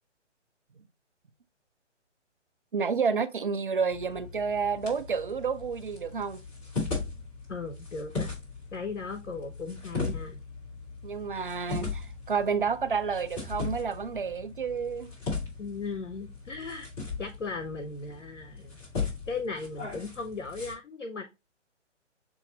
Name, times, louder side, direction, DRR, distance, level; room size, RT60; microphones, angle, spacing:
voice 1, 2.7-6.4 11.0-15.1, right 5 dB, 45° right, 0.4 m, -30 dB
Impact on Grass or Leaves, 3.9-20.7, left 4 dB, 25° left, 2.6 m, -38 dB
voice 2, 7.5-8.3 8.7-10.4 15.6-16.9 17.2-18.8 19.3-21.2, left 4 dB, 85° left, 0.8 m, -37 dB
6.8 x 2.5 x 2.8 m
figure-of-eight pair, 140°, 37 cm